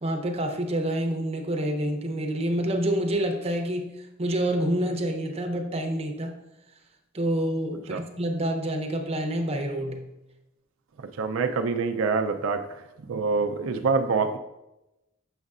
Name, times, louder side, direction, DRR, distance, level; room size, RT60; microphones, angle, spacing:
voice 1, 0.0-6.4 7.1-10.1, right 1 dB, 30° right, 3 dB, 0.7 m, -27 dB
voice 2, 11.2-12.8 13.1-14.4, right 4 dB, 75° right, 6 dB, 0.4 m, -25 dB
6.4 x 6.3 x 2.4 m, 0.94 s
head